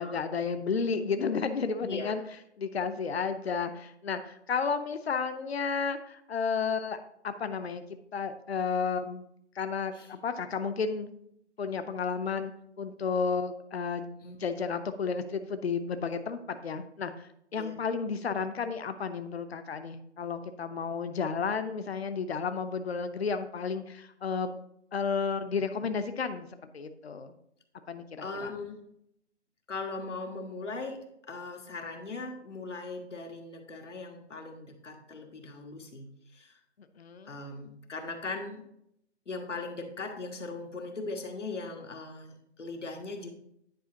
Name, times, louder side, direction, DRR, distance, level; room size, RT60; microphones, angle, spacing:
voice 1, 0.0-2.2 2.6-7.0 7.2-7.8 8.1-9.2 9.6-11.1 11.6-12.5 12.8-14.1 14.4-24.5 24.9-26.5 26.7-27.3 27.9-28.5 37.0-37.4, left 5 dB, 60° left, 9 dB, 0.7 m, -32 dB
voice 2, 1.8-2.2 9.9-10.1 14.2-14.4 17.6-17.8 28.2-28.8 29.7-31.0 31.3-36.6 37.2-38.6 39.3-43.3, left 3 dB, 90° left, 3 dB, 1.6 m, -39 dB
10.0 x 5.0 x 2.8 m, 0.74 s
hypercardioid pair, 175°, 35 cm